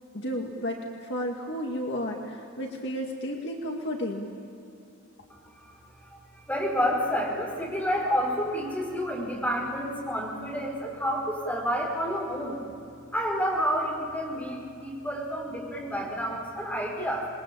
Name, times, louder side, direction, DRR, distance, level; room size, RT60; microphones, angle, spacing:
voice 1, 0.1-4.3, equal, 55° left, 1 dB, 2.1 m, -32 dB
voice 2, 6.5-12.6 13.1-17.3, equal, 10° left, -2 dB, 5.2 m, -29 dB
27.0 x 22.0 x 8.7 m, 2.6 s
head